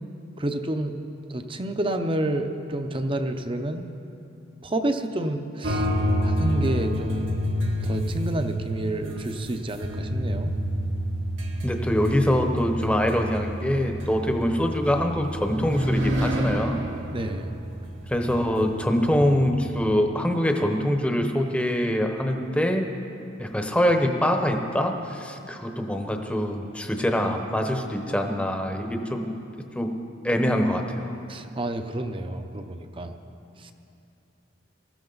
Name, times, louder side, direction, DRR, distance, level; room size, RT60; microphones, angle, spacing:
voice 1, 0.4-1.0 1.3-3.8 4.6-5.9 6.2-7.3 7.8-10.5 17.1-17.5 31.3-33.2 33.6-33.7, right 1 dB, 25° right, 7 dB, 0.7 m, -29 dB
sound 1, 5.6-19.8, equal, 80° right, 1.6 m, -29 dB
voice 2, 11.6-16.8 18.1-22.9 23.4-29.3 29.8-29.9 30.2-31.2, equal, 5° left, 4 dB, 0.9 m, -24 dB
19.5 x 14.0 x 4.0 m, 2.7 s
head